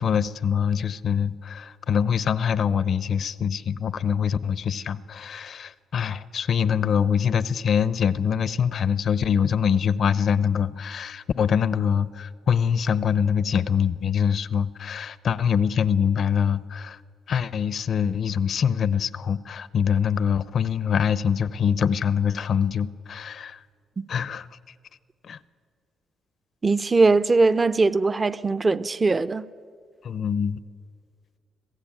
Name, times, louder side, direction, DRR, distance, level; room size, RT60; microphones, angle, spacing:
voice 1, 0.0-17.0 17.3-23.6 24.1-24.5 25.2-25.4 30.0-30.6, left 7 dB, 60° left, 0.8 m, -24 dB
voice 2, 26.6-29.5, right 3 dB, 30° right, 0.6 m, -21 dB
26.0 x 16.0 x 8.9 m
cardioid pair, 90°, 0 cm